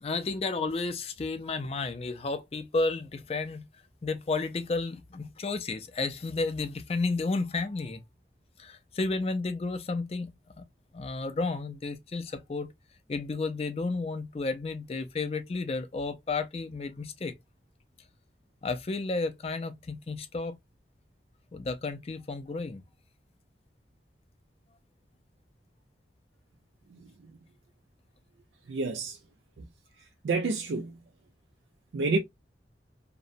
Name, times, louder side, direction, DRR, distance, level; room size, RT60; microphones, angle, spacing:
voice 1, 0.0-3.7 4.0-8.0 8.6-10.3 10.9-12.7 13.1-17.3 18.6-20.6 21.5-22.8, left 3 dB, 35° left, 0.3 m, -32 dB
voice 2, 26.9-27.3 28.7-29.2 29.6-29.7 30.2-31.0 31.9-32.2, right 3 dB, 80° right, 0.4 m, -29 dB
2.8 x 2.1 x 2.4 m
head